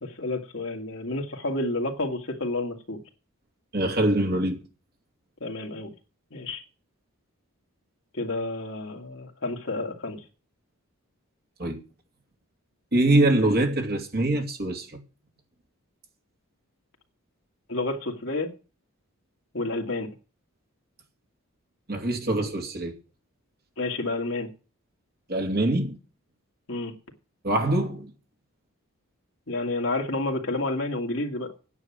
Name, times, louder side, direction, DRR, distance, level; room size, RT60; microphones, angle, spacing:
voice 1, 0.0-3.0 5.4-5.9 6.3-6.6 8.1-10.2 17.7-18.5 19.5-20.1 23.8-24.5 26.7-26.9 29.5-31.5, left 2 dB, 60° left, 2.1 m, -30 dB
voice 2, 3.7-4.6 11.6-11.8 12.9-15.0 21.9-22.9 25.3-26.0 27.4-28.1, right 1 dB, 45° right, 2.5 m, -24 dB
9.6 x 7.4 x 7.3 m
head